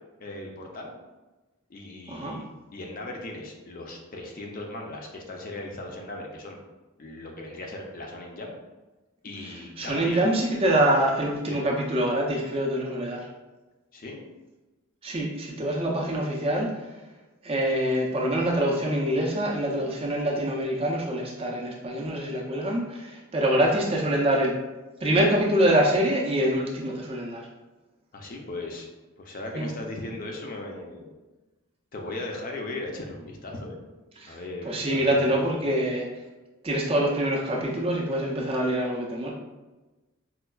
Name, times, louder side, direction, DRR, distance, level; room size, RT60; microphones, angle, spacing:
voice 1, 0.2-0.9 1.7-2.4 2.7-6.6 7.0-8.5 9.2-10.2 11.5-11.8 13.9-14.2 28.1-28.9 29.2-31.1 31.9-33.9 34.3-35.6, left 2 dB, 40° left, 1 dB, 0.4 m, -38 dB
voice 2, 2.1-2.4 9.8-13.2 15.0-16.7 17.4-24.5 25.0-27.4 29.5-29.7 34.2-34.3 34.6-36.1 36.6-39.3, right 1 dB, 25° right, -1 dB, 0.4 m, -25 dB
4.3 x 2.2 x 2.3 m, 1.2 s
head